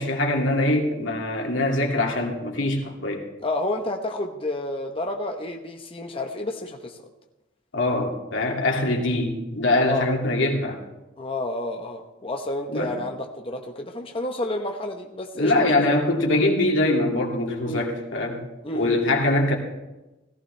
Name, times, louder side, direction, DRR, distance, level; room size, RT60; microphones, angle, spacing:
voice 1, 0.0-3.2 7.7-10.8 12.7-13.0 15.3-18.4 18.7-19.6, left 2 dB, 85° left, 0 dB, 2.4 m, -23 dB
voice 2, 3.4-7.0 9.8-10.0 11.2-16.0 17.7-17.8 18.6-19.2, left 2 dB, 30° left, 3 dB, 1.0 m, -30 dB
17.5 x 14.5 x 3.3 m, 1.0 s
head